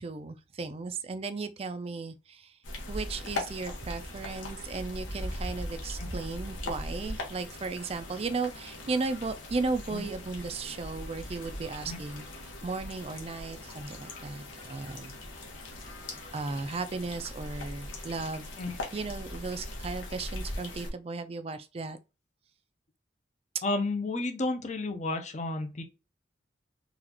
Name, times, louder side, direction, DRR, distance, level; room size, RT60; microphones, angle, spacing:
voice 1, 0.0-2.5 2.9-12.3 12.6-15.1 16.3-18.5 18.9-22.0 23.5-23.6, right 3 dB, 30° right, 0.4 m, -35 dB
sound 1, 2.6-20.9, left 1 dB, 85° left, 1.2 m, -40 dB
voice 2, 23.6-25.8, left 2 dB, 40° left, 0.6 m, -32 dB
4.0 x 2.4 x 2.8 m
head